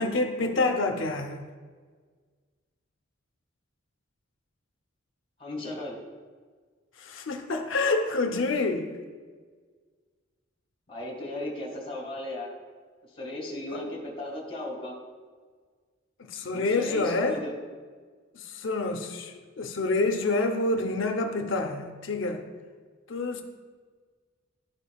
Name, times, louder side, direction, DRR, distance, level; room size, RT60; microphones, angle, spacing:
voice 1, 0.0-1.4 7.0-8.9 13.7-13.8 16.2-17.4 18.3-22.4 23.1-23.4, left 3 dB, 65° left, 5 dB, 0.7 m, -27 dB
voice 2, 5.4-6.0 10.9-12.5 13.1-15.0 16.4-17.5, left 1 dB, 30° left, -1 dB, 1.8 m, -36 dB
12.0 x 5.3 x 2.3 m, 1.6 s
head